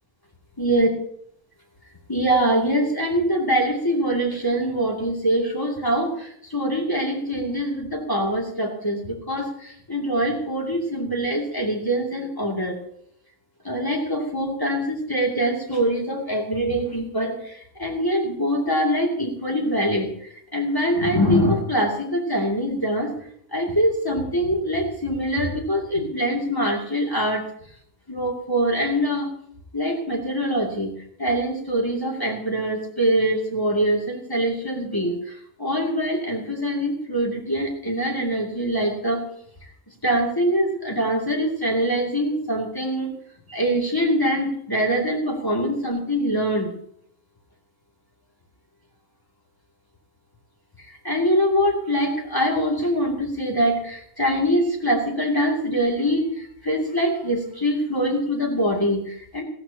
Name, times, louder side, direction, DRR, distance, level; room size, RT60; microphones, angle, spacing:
voice 1, 0.6-0.9 2.1-12.8 13.6-20.1 20.5-23.1 23.5-27.4 28.1-29.3 29.7-30.9 31.2-35.2 35.6-39.2 40.0-43.1 43.5-46.7 51.0-56.3 56.6-59.4, equal, 15° left, -1 dB, 2.7 m, -23 dB
18.5 x 15.0 x 2.9 m, 0.69 s
omnidirectional pair, 1.5 m